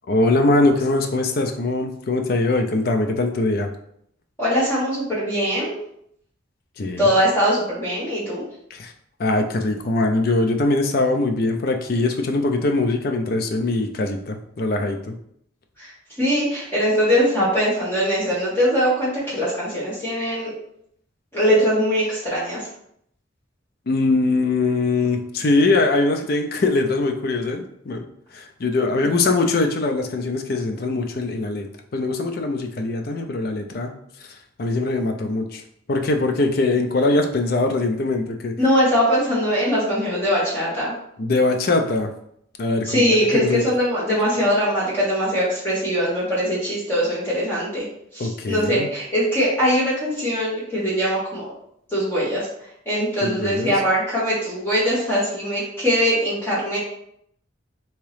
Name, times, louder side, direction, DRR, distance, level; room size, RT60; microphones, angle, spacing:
voice 1, 0.1-3.7 6.8-7.1 8.7-8.9 9.2-15.1 23.9-28.1 28.3-31.7 31.9-33.9 34.6-35.6 35.9-38.5 41.2-42.1 42.6-43.6 48.2-48.9 53.2-53.8, left 2 dB, 45° left, 4 dB, 0.4 m, -22 dB
voice 2, 4.4-5.7 7.0-8.4 15.8-15.9 16.2-20.5 21.3-22.7 38.6-40.9 42.8-47.8 48.1-51.5 51.9-52.5 52.8-56.8, equal, 10° left, -9 dB, 1.3 m, -21 dB
3.5 x 2.9 x 3.2 m, 0.71 s
head